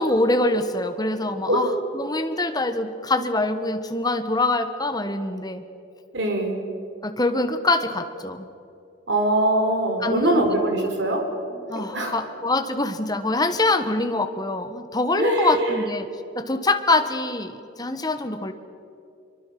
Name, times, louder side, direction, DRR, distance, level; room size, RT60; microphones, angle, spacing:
voice 1, 0.0-5.6 7.0-8.5 10.0-10.4 11.7-16.1 16.3-18.5, left 2 dB, 20° left, 8 dB, 1.4 m, -24 dB
voice 2, 6.1-6.5 9.1-12.1 15.2-15.8, right 1 dB, 60° right, 3 dB, 4.3 m, -23 dB
24.5 x 23.5 x 6.0 m, 2.7 s
head